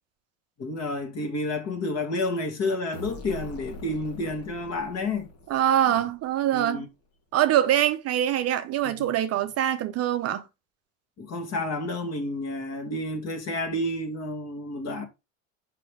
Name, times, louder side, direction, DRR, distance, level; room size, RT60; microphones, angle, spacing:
voice 1, 0.6-5.3 6.5-6.9 8.8-9.1 11.2-15.1, left 2 dB, 40° left, 1.8 m, -30 dB
sound 1, 2.9-6.6, left 1 dB, 70° left, 2.2 m, -43 dB
voice 2, 5.5-6.8 7.3-10.4, right 11 dB, 40° right, 0.6 m, -24 dB
5.6 x 5.2 x 3.3 m
hypercardioid pair, 95°, 40 cm